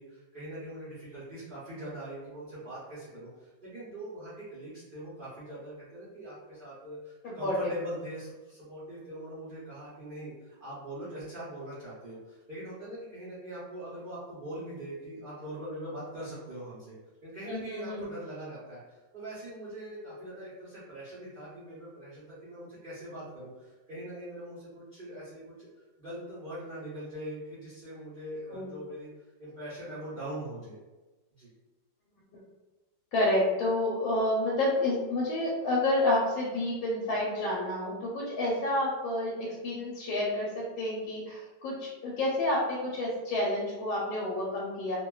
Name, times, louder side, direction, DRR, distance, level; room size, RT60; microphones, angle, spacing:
voice 1, 0.0-17.0 17.2-25.7 26.0-29.1 29.4-30.8 31.3-31.5, right 1 dB, 75° right, -11 dB, 0.4 m, -42 dB
voice 2, 7.2-7.7 17.5-18.0 28.5-28.7 33.1-40.5 40.8-45.0, left 1 dB, 85° left, -5 dB, 1.4 m, -29 dB
3.0 x 2.2 x 2.2 m, 1.2 s
omnidirectional pair, 2.1 m